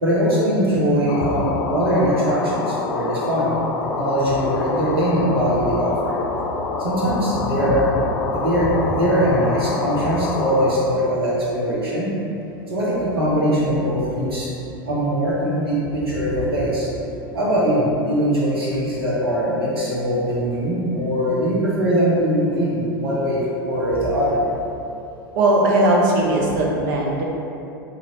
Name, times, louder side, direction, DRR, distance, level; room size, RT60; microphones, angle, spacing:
voice 1, 0.0-3.5 3.8-6.2 6.8-7.9 8.3-12.1 12.7-14.5 14.8-16.9 17.3-24.4, equal, 80° right, -8 dB, 1.0 m, -21 dB
sound 1, 1.1-10.8, left 3 dB, 45° left, 0.4 m, -27 dB
voice 2, 25.3-27.2, right 1 dB, 55° right, -3 dB, 0.7 m, -18 dB
3.1 x 2.9 x 3.7 m, 2.8 s
figure-of-eight pair, 85°, 12 cm